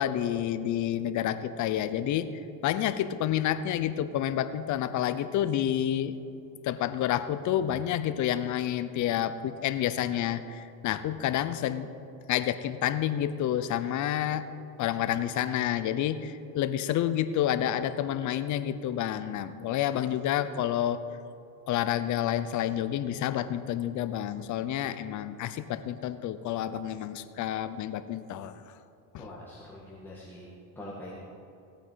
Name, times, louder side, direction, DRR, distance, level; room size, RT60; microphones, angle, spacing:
voice 1, 0.0-2.3 2.6-6.1 6.6-11.9 12.3-14.4 14.8-21.0 21.7-28.6 29.1-29.3, left 11 dB, 45° left, 12 dB, 0.8 m, -29 dB
voice 2, 29.2-30.5 30.8-31.1, left 1 dB, 5° left, -7 dB, 2.0 m, -44 dB
17.0 x 8.8 x 5.7 m, 2.7 s
supercardioid pair, 125°, 41 cm